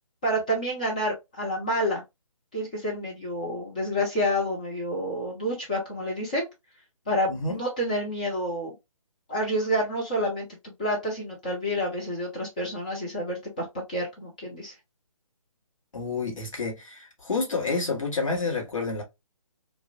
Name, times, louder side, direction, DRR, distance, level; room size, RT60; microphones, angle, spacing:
voice 1, 0.2-2.0 2.5-6.5 7.1-8.7 9.3-10.5 10.8-14.7, equal, 15° left, 0.4 m, -28 dB
voice 2, 7.3-7.6 15.9-19.0, left 4 dB, 65° left, 1.2 m, -29 dB
2.4 x 2.0 x 2.5 m
figure-of-eight pair, 140°, 18 cm